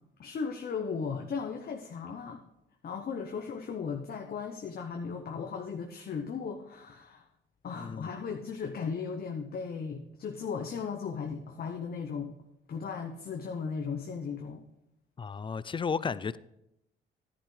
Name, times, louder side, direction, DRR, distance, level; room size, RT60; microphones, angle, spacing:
voice 1, 0.2-2.4 2.8-7.3 7.6-12.3 12.7-14.6, left 5 dB, 50° left, 0.9 m, -36 dB
voice 2, 7.8-8.1 15.2-16.4, left 5 dB, 25° left, 0.4 m, -33 dB
11.0 x 10.0 x 3.3 m
cardioid pair, 90°, 20 cm